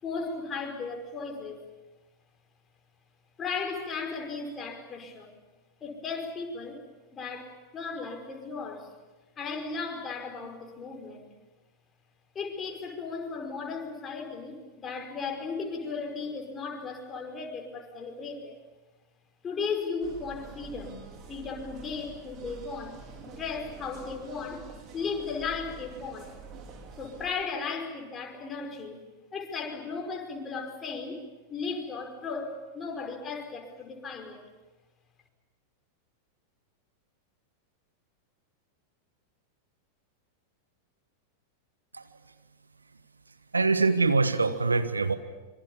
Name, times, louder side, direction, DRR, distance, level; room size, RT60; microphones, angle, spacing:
voice 1, 0.0-1.7 3.4-5.4 5.8-6.8 7.1-8.9 9.4-11.3 12.3-18.6 19.4-23.0 23.3-26.4 27.0-29.0 29.3-34.4, left 4 dB, 20° left, 3 dB, 5.1 m, -36 dB
sound 1, 20.0-27.3, right 4 dB, 35° right, 3.9 m, -47 dB
voice 2, 43.5-45.2, right 3 dB, 80° right, 11 dB, 1.4 m, -24 dB
26.0 x 25.0 x 7.1 m, 1.2 s
figure-of-eight pair, 90°, 0 cm